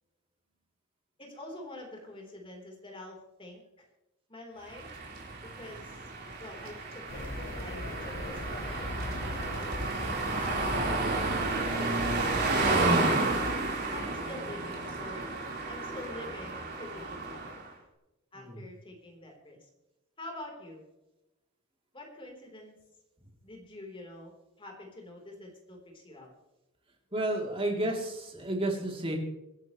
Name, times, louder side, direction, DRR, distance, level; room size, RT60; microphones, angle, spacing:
voice 1, 1.2-3.6 4.3-4.9 5.4-6.0 6.4-7.2 7.6-9.6 10.4-11.1 11.6-13.0 13.9-15.3 15.7-17.6 18.3-19.7 20.2-20.8 21.9-22.7 23.4-26.3, left 1 dB, 25° left, 0 dB, 4.0 m, -46 dB
sound 1, 4.7-17.7, right 2 dB, 55° right, 4.3 m, -31 dB
sound 2, 7.1-12.9, left 1 dB, 90° left, 3.5 m, -38 dB
voice 2, 27.1-29.2, right 1 dB, 25° right, 0 dB, 3.3 m, -31 dB
26.0 x 11.0 x 3.2 m, 0.96 s
head